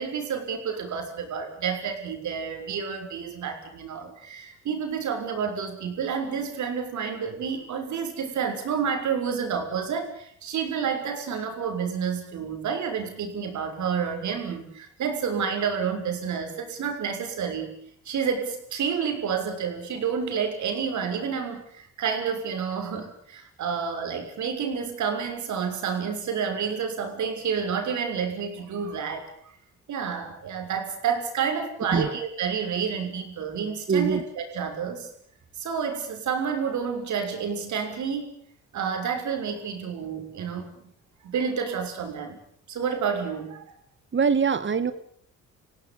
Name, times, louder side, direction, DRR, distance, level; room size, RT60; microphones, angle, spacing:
voice 1, 0.0-17.7 18.0-29.3 29.9-35.1 35.6-38.4 38.7-40.9 41.2-42.4 42.7-43.7, right 6 dB, 70° right, 5 dB, 6.4 m, -29 dB
voice 2, 33.9-34.2 44.1-44.9, right 6 dB, 40° right, 13 dB, 2.2 m, -23 dB
26.5 x 17.0 x 8.9 m, 0.65 s
cardioid pair, 90°, 30 cm